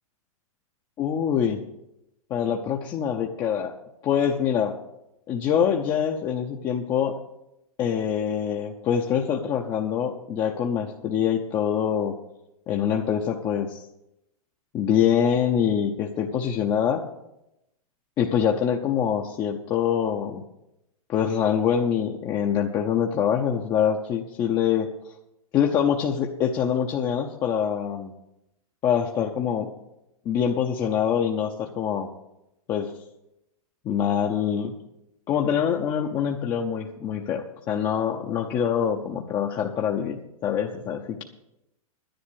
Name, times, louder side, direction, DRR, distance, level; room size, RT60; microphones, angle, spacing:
voice 1, 1.0-1.6 2.3-3.7 4.0-4.8 5.3-7.2 7.8-12.2 12.7-13.8 14.7-17.1 18.2-20.4 21.1-24.9 25.5-28.1 28.8-29.7 30.2-32.1 32.7-32.9 33.8-34.7 35.3-41.2, left 8 dB, 20° left, 1 dB, 0.8 m, -25 dB
10.5 x 10.5 x 6.4 m, 0.86 s
hypercardioid pair, 150°, 19 cm